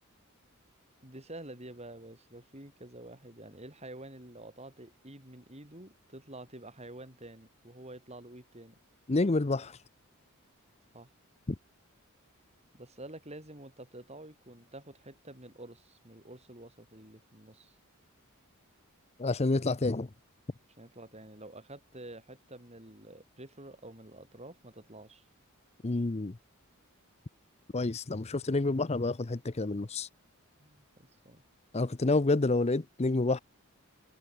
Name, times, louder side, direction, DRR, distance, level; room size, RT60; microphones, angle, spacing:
voice 1, 1.0-8.8 10.9-11.1 12.7-17.8 20.8-25.2 30.6-31.4, right 1 dB, 30° right, 6.3 m, -48 dB
voice 2, 9.1-9.8 11.5-11.6 19.2-20.1 25.8-26.4 27.7-30.1 31.7-33.4, left 2 dB, 30° left, 0.6 m, -28 dB
head